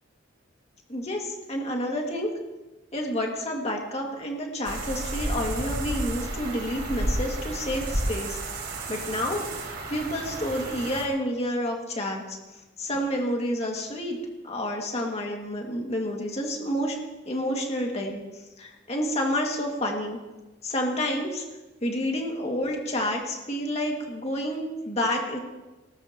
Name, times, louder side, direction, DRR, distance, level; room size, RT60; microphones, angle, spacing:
voice 1, 0.9-2.3 2.9-8.4 8.9-9.4 9.9-12.4 12.8-14.2 14.4-17.0 17.3-18.2 18.6-20.2 20.6-21.4 21.8-25.4, equal, 35° left, 0 dB, 2.2 m, -29 dB
sound 1, 4.6-11.1, right 1 dB, 55° right, 4.0 m, -32 dB
20.0 x 19.0 x 3.0 m, 1.1 s
head